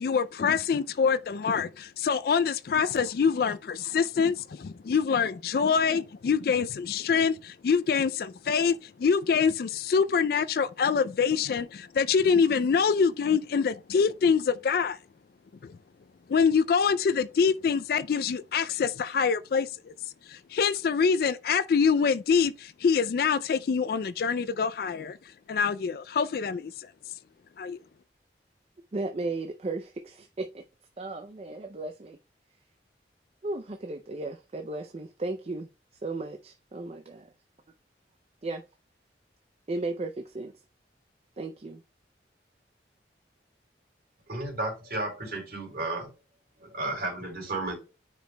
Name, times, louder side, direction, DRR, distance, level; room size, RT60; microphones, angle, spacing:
voice 1, 0.0-15.0 15.6-15.8 16.3-19.9 20.3-25.2 25.5-26.9 27.6-27.8, left 6 dB, 55° left, 0.3 m, -25 dB
voice 2, 28.9-30.6 31.0-32.2 33.4-35.7 36.0-37.3 38.4-38.6 39.7-40.5 41.4-41.8, right 2 dB, 35° right, 0.4 m, -35 dB
voice 3, 44.3-46.1 46.6-47.8, right 2 dB, 55° right, 3.5 m, -33 dB
9.1 x 5.0 x 2.2 m
head